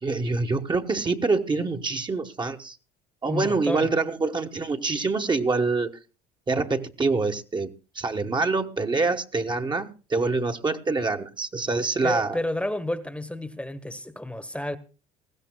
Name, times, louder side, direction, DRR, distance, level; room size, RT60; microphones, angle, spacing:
voice 1, 0.0-2.8 3.2-5.9 6.5-12.4, right 3 dB, 25° right, 1.2 m, -26 dB
voice 2, 3.3-3.9 12.0-14.8, left 1 dB, 5° left, 1.2 m, -30 dB
20.0 x 16.0 x 2.2 m
supercardioid pair, 80°, 18 cm